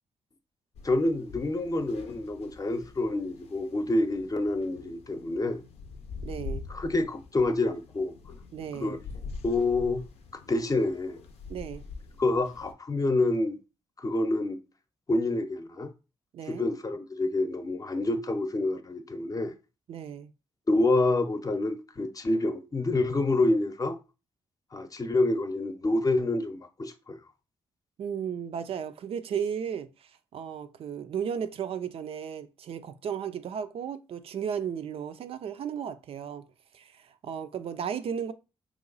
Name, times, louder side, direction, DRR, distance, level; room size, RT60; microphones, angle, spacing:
sound 1, 0.7-12.7, left 4 dB, 80° left, 0.5 m, -44 dB
voice 1, 0.8-5.6 6.7-8.1 8.8-9.0 9.4-10.0 10.5-11.2 12.2-13.6 14.0-14.6 15.1-15.9 16.5-19.5 20.7-24.0 24.7-27.2, left 2 dB, 35° left, 0.6 m, -27 dB
voice 2, 6.2-6.6 8.5-9.0 11.5-11.8 16.3-16.7 19.9-20.3 28.0-36.4 36.7-38.3, right 8 dB, 65° right, 0.4 m, -35 dB
3.0 x 2.3 x 3.9 m
supercardioid pair, 55°, 11 cm